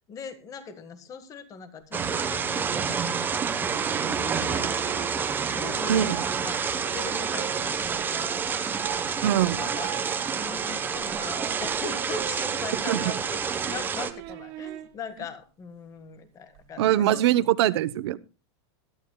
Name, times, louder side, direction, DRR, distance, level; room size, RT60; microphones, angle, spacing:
voice 1, 0.0-9.1 9.5-17.3, left 5 dB, 20° left, 10 dB, 1.6 m, -41 dB
sound 1, 1.9-14.1, right 6 dB, 15° right, 1.0 m, -28 dB
sound 2, 3.7-14.9 16.6-17.0, right 15 dB, 40° right, 1.7 m, -41 dB
voice 2, 5.9-6.2 9.2-9.6 12.9-13.0 16.8-18.2, right 12 dB, 65° right, 16 dB, 0.9 m, -22 dB
21.0 x 12.0 x 2.3 m, 0.32 s
supercardioid pair, 155°, 15 cm